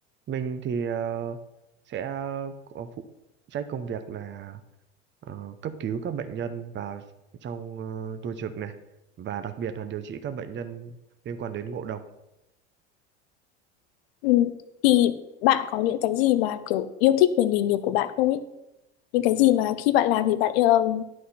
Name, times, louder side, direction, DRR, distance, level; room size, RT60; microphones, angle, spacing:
voice 1, 0.3-1.4 1.9-3.1 3.5-4.6 5.2-7.0 7.4-8.7 9.2-11.0 11.2-12.0, right 7 dB, 35° right, 9 dB, 0.8 m, -33 dB
voice 2, 14.8-18.4 19.1-21.0, left 13 dB, 75° left, 14 dB, 0.8 m, -22 dB
11.0 x 6.4 x 4.3 m, 0.89 s
hypercardioid pair, 75°, 31 cm